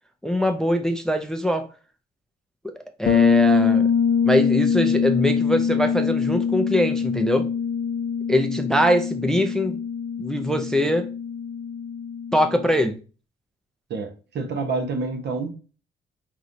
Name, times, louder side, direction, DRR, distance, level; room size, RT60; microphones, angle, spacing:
voice 1, 0.2-1.7 2.6-2.7 3.0-3.9 4.2-7.5 8.3-9.8 10.2-11.1 12.3-13.0, equal, 5° left, 0.4 m, -22 dB
Bass guitar, 3.1-12.7, left 6 dB, 50° left, 0.6 m, -23 dB
voice 2, 13.9-15.5, right 3 dB, 60° right, 0.9 m, -28 dB
3.8 x 3.0 x 2.6 m
cardioid pair, 90°, 20 cm